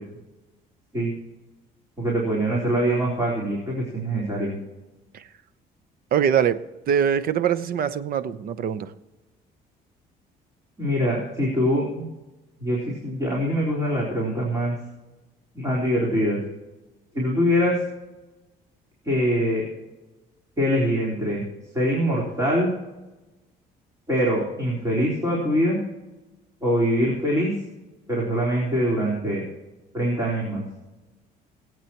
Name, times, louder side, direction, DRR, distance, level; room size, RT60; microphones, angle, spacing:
voice 1, 2.0-4.5 10.8-12.1 12.6-14.8 15.5-16.4 17.1-17.8 19.0-19.7 20.6-21.4 21.7-22.7 24.1-25.8 26.6-27.5 28.1-29.4 29.9-30.6, equal, 20° right, -5 dB, 4.0 m, -23 dB
voice 2, 6.1-6.6 6.9-8.9, right 8 dB, 60° right, 13 dB, 0.9 m, -23 dB
23.0 x 8.6 x 3.0 m, 1.1 s
cardioid pair, 110°, 17 cm